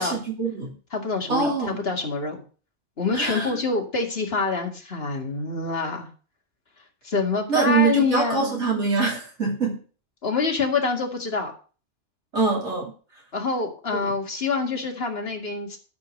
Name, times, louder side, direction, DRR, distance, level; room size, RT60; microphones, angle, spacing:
voice 1, 0.0-0.7 1.3-1.8 3.1-3.6 7.5-9.8 12.3-13.2 14.0-14.1, right 4 dB, 75° right, -2 dB, 3.1 m, -24 dB
voice 2, 0.9-2.4 3.0-6.1 7.0-8.6 10.2-11.5 13.3-15.8, left 4 dB, 55° left, 2 dB, 2.2 m, -26 dB
12.0 x 4.9 x 6.4 m, 0.38 s
omnidirectional pair, 1.2 m